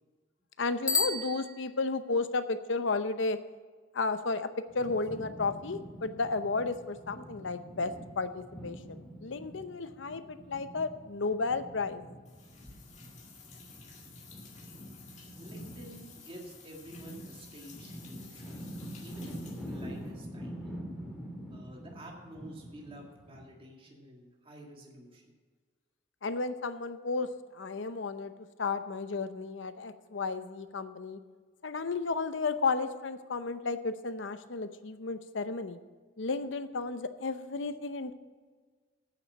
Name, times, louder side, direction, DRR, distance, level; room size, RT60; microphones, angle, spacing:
voice 1, 0.6-3.4 3.9-4.5 4.7-12.0 26.2-27.3 27.5-28.3 28.6-31.2 31.6-35.8 36.2-38.1, left 3 dB, 75° left, 11 dB, 0.7 m, -33 dB
Bicycle bell, 0.8-2.2, left 3 dB, 20° left, 0.7 m, -32 dB
sound 1, 4.7-23.4, equal, ahead, 2.1 m, -46 dB
sound 2, 12.2-20.1, left 5 dB, 40° left, 2.1 m, -54 dB
voice 2, 15.4-20.7 21.5-25.4, equal, 30° right, 0 dB, 1.8 m, -50 dB
9.3 x 7.1 x 7.4 m, 1.5 s
head